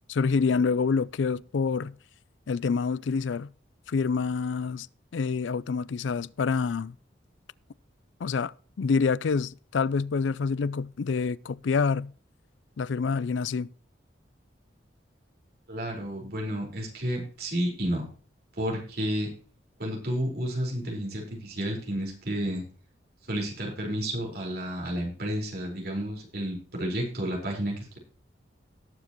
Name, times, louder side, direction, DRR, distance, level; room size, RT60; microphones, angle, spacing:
voice 1, 0.1-1.9 2.5-3.5 3.9-4.9 5.1-6.9 8.2-12.1 12.8-13.7, left 5 dB, 80° left, 0.4 m, -27 dB
voice 2, 15.7-18.1 18.6-19.3 19.8-22.6 23.3-28.0, equal, 55° right, 4.6 m, -31 dB
18.5 x 7.3 x 3.0 m
head